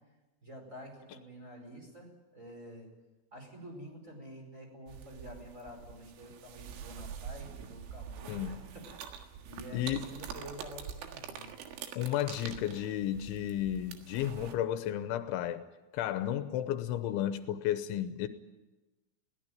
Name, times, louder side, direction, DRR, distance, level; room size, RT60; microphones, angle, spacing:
voice 1, 0.4-2.9 3.3-9.1 9.4-11.5, equal, 15° right, 5.0 m, -48 dB
sound 1, 4.9-14.6, right 8 dB, 85° right, 4.1 m, -45 dB
voice 2, 8.3-8.6 9.7-10.1 12.0-15.6 15.9-18.3, left 11 dB, 80° left, 3.2 m, -33 dB
21.0 x 18.0 x 9.2 m
omnidirectional pair, 5.4 m